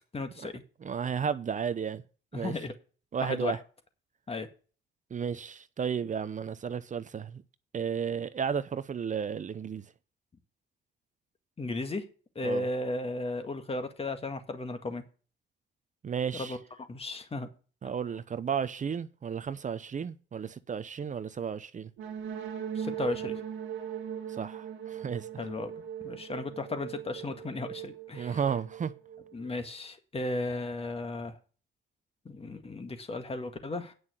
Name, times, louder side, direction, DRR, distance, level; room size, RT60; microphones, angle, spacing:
voice 1, 0.1-0.6 2.3-2.7 3.2-3.6 4.3-4.5 11.6-12.0 12.4-15.0 16.3-16.6 16.9-17.5 22.8-23.4 25.4-25.7 26.0-28.4 29.3-31.4 32.3-33.9, left 2 dB, 30° left, 2.0 m, -35 dB
voice 2, 0.8-2.0 2.3-2.5 3.1-3.6 5.1-7.4 7.7-9.8 12.4-12.7 16.0-16.6 17.8-21.9 24.4-25.3 28.1-28.9, right 7 dB, 40° right, 0.8 m, -33 dB
sound 1, 22.0-29.7, right 9 dB, 90° right, 1.8 m, -39 dB
9.5 x 5.9 x 7.8 m
cardioid pair, 90°, 20 cm